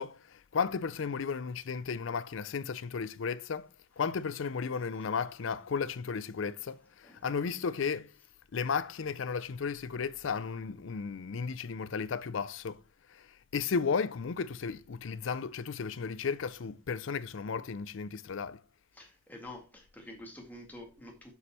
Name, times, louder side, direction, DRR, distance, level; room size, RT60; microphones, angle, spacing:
voice 1, 0.0-3.7 4.0-8.1 8.5-12.8 13.1-18.6, left 5 dB, 70° left, 0.5 m, -34 dB
voice 2, 18.9-21.3, left 1 dB, 10° left, 2.0 m, -48 dB
7.1 x 5.2 x 4.3 m
head